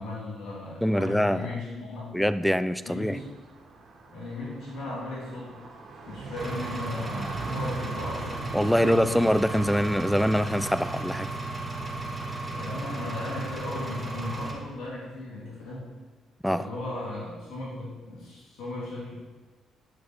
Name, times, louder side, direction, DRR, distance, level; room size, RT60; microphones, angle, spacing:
voice 1, 0.0-2.3 2.8-3.3 4.1-5.6 6.1-9.1 12.5-15.9 16.5-19.2, left 2 dB, 80° left, -5 dB, 3.1 m, -36 dB
voice 2, 0.8-1.5 2.1-3.2 8.5-11.3 16.4-16.7, equal, 5° left, 13 dB, 0.4 m, -24 dB
Car passing by, 3.0-11.6, right 3 dB, 70° right, 1.7 m, -42 dB
Engine, 6.4-14.5, right 2 dB, 25° right, 1.9 m, -34 dB
9.7 x 6.1 x 4.6 m, 1.3 s
cardioid pair, 90°, 0 cm